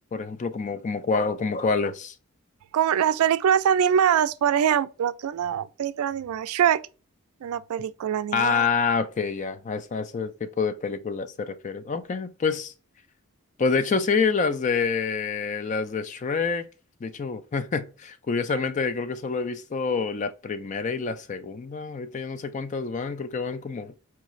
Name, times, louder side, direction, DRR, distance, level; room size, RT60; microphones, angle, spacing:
voice 1, 0.1-2.1 8.3-12.7 13.6-16.7 17.0-23.9, left 5 dB, 35° left, 0.3 m, -27 dB
voice 2, 2.7-6.8 7.4-8.7, right 9 dB, 80° right, 0.3 m, -23 dB
4.6 x 3.0 x 2.4 m
head